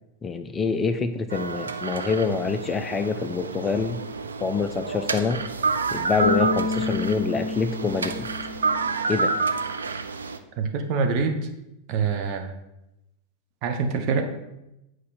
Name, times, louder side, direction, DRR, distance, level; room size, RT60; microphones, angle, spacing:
voice 1, 0.2-4.0 4.4-5.4 5.9-8.3 9.1-9.3, left 5 dB, 20° left, 9 dB, 0.4 m, -26 dB
sound 1, 1.3-10.4, right 4 dB, 70° right, 0.5 m, -29 dB
Bass guitar, 6.2-9.3, left 4 dB, 65° left, 0.6 m, -29 dB
voice 2, 10.6-11.5 11.9-12.5 13.6-14.2, right 5 dB, 40° right, 5 dB, 0.9 m, -25 dB
8.5 x 4.7 x 4.3 m, 0.89 s
figure-of-eight pair, 90°, 0 cm